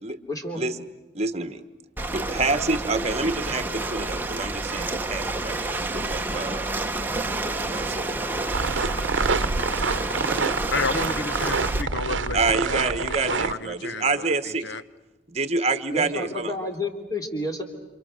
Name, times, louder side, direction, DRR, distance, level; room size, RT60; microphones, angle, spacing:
voice 1, 0.3-0.6 15.9-17.6, left 1 dB, 20° left, 3.5 m, -30 dB
voice 2, 1.1-1.6 2.1-6.7 7.6-8.2 12.3-14.7 15.3-16.5, right 3 dB, 35° right, 1.3 m, -27 dB
Ocean, 2.0-11.8, right 2 dB, 10° right, 1.1 m, -29 dB
sound 1, 8.5-13.5, right 4 dB, 75° right, 0.9 m, -27 dB
voice 3, 10.7-14.8, left 3 dB, 65° left, 1.1 m, -32 dB
30.0 x 28.0 x 6.6 m
head